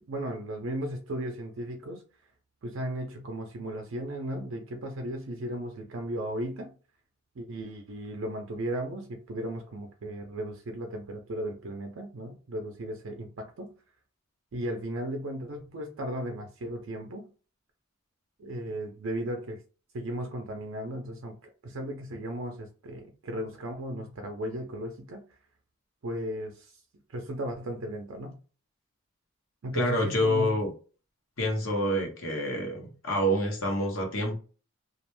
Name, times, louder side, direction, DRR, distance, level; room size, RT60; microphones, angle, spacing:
voice 1, 0.0-2.0 2.6-6.7 7.4-13.7 14.5-17.3 18.4-19.6 19.9-25.2 26.0-26.8 27.1-28.4 29.6-30.6, right 1 dB, 70° right, 0.4 m, -36 dB
voice 2, 29.7-30.7 31.4-34.4, equal, 80° left, 0.9 m, -27 dB
2.4 x 2.1 x 3.0 m
head